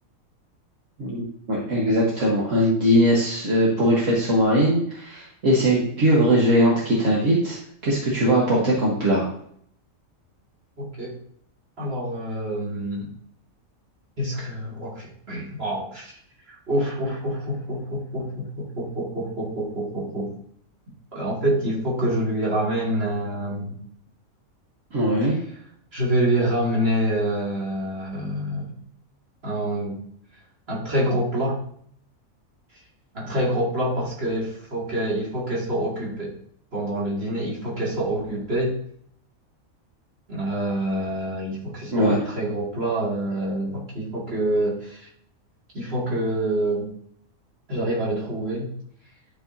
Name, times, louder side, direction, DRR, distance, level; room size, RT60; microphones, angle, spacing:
voice 1, 1.5-9.2 24.9-25.4 41.9-42.2, equal, 65° right, -5 dB, 1.8 m, -20 dB
voice 2, 10.8-11.1 11.8-13.1 14.2-16.1 16.5-20.4 21.1-23.8 25.9-28.8 29.4-30.0 30.7-31.6 33.1-36.4 36.7-38.8 40.3-45.1 45.7-46.9 47.7-48.7, right 1 dB, 50° right, -5 dB, 2.5 m, -26 dB
11.0 x 4.9 x 2.7 m, 0.65 s
omnidirectional pair, 1.4 m